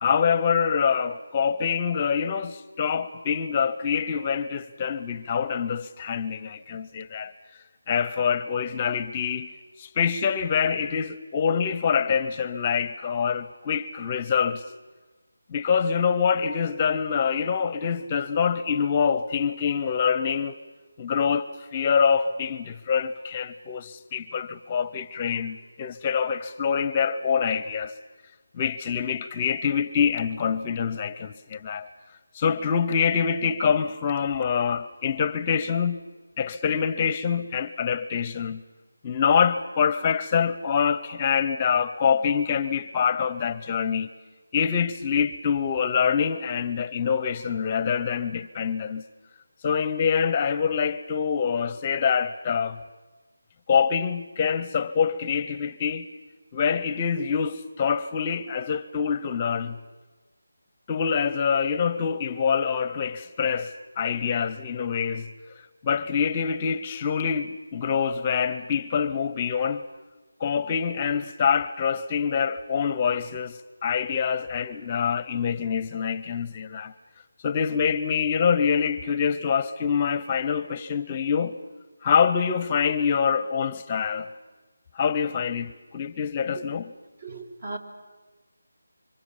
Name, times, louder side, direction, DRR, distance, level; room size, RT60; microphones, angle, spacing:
voice 1, 0.0-7.3 7.9-9.5 9.8-14.6 15.5-20.6 21.0-27.9 28.5-31.9 32.3-36.0 36.4-38.6 39.0-44.1 44.5-49.0 49.6-52.8 53.7-56.1 56.5-59.8 60.9-65.3 65.6-69.8 70.4-76.9 77.4-81.6 82.0-84.3 84.9-86.9, left 6 dB, 25° left, 0.7 m, -25 dB
voice 2, 87.2-87.8, right 3 dB, 50° right, 3.7 m, -36 dB
29.0 x 25.0 x 7.2 m
figure-of-eight pair, 165°, 0 cm